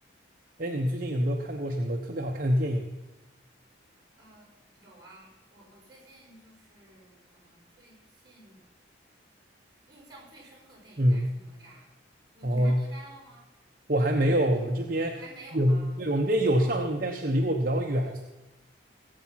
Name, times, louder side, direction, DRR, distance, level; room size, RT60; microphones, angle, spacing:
voice 1, 0.6-2.9 11.0-11.3 12.4-12.8 13.9-15.2 15.5-18.2, equal, 45° right, 2 dB, 1.0 m, -25 dB
voice 2, 4.2-4.5 4.7-8.6 9.9-11.9 12.3-13.5 15.1-16.0 16.5-16.9, right 2 dB, 20° right, -3 dB, 5.2 m, -52 dB
18.5 x 8.5 x 5.8 m, 1.1 s
head